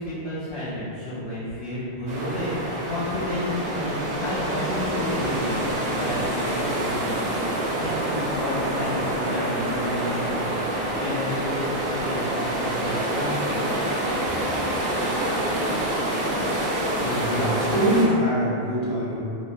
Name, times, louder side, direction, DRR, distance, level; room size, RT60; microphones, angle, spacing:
voice 1, 0.0-10.6 10.8-13.6, left 1 dB, 75° left, -11 dB, 0.9 m, -31 dB
sound 1, 2.1-18.1, right 1 dB, 55° right, 0.5 m, -27 dB
voice 2, 16.8-19.2, equal, 45° left, -8 dB, 0.7 m, -24 dB
3.0 x 2.0 x 2.5 m, 2.7 s
omnidirectional pair, 1.1 m